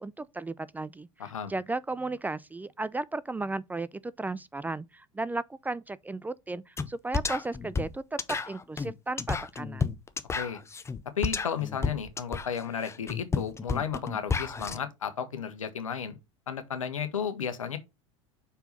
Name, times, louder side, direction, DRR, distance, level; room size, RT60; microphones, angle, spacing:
voice 1, 0.0-1.1 1.5-9.9, right 2 dB, 10° right, 0.4 m, -35 dB
voice 2, 1.2-1.5 10.3-10.6 11.2-16.2 16.5-17.8, left 7 dB, 85° left, 1.2 m, -33 dB
sound 1, 6.8-6.9 7.1-14.8, left 5 dB, 15° left, 0.7 m, -31 dB
5.6 x 4.6 x 5.2 m
hypercardioid pair, 80°, 17 cm